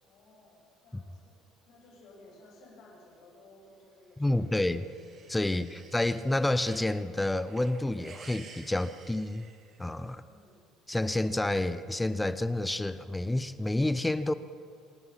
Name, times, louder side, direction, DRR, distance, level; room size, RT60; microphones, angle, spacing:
voice 1, 0.0-1.4 1.7-4.8 5.5-5.8 10.2-10.7, left 2 dB, 50° left, -1 dB, 7.6 m, -57 dB
voice 2, 4.2-4.8 5.3-9.5 9.8-10.2 10.9-14.3, left 1 dB, 5° left, 13 dB, 0.6 m, -29 dB
sound 1, 4.3-6.9 7.3-10.2, right 5 dB, 35° right, 2.1 m, -53 dB
26.0 x 19.5 x 5.8 m, 2.2 s
cardioid pair, 180°, 0 cm